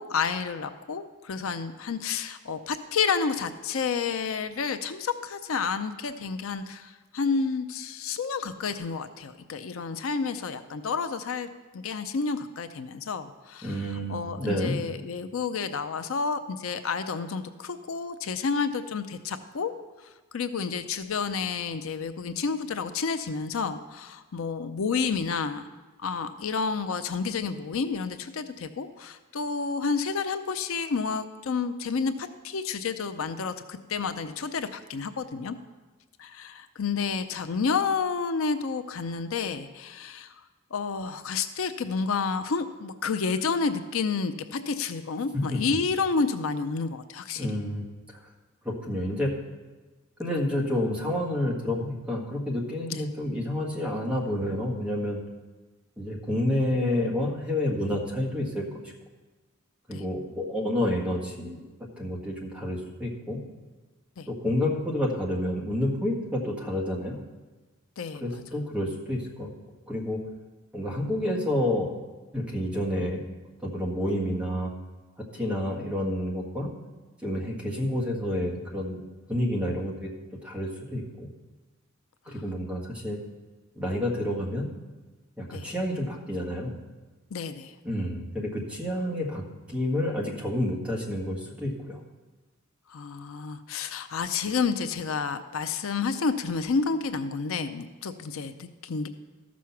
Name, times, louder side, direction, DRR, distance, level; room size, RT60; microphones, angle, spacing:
voice 1, 0.0-11.5 11.7-13.8 14.1-19.7 20.0-25.7 26.0-35.6 36.2-40.3 40.7-47.5 52.9-53.1 59.9-60.0 64.2-64.3 68.0-68.4 82.3-82.4 85.5-85.7 87.3-87.7 92.9-99.1, left 5 dB, 70° left, 10 dB, 0.5 m, -30 dB
voice 2, 13.6-14.7 45.5-45.6 47.3-47.8 48.1-48.3 48.6-49.3 50.2-55.2 56.0-58.8 59.9-61.6 62.0-63.4 64.3-67.2 68.2-69.5 69.9-70.2 70.7-72.0 72.3-73.2 73.6-74.7 75.2-76.7 77.2-79.0 79.3-81.3 82.2-83.2 83.7-84.7 85.4-86.8 87.8-92.0, left 1 dB, 5° right, -3 dB, 1.7 m, -29 dB
14.0 x 6.2 x 5.7 m, 1.3 s
head